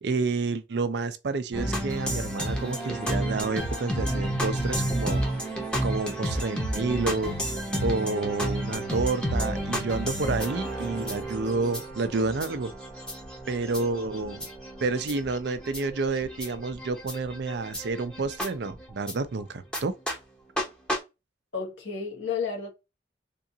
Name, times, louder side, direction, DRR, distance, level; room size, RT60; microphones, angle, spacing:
voice 1, 0.0-5.3 5.8-7.3 7.8-12.7 13.5-14.5 14.8-20.0, right 3 dB, 60° right, 0.5 m, -29 dB
sound 1, 1.5-19.1 19.7-19.8 20.1-20.2 20.6-20.7 20.9-21.0, right 1 dB, 5° left, 0.8 m, -31 dB
voice 2, 21.5-22.7, left 6 dB, 75° left, 1.5 m, -31 dB
3.7 x 2.5 x 2.7 m
head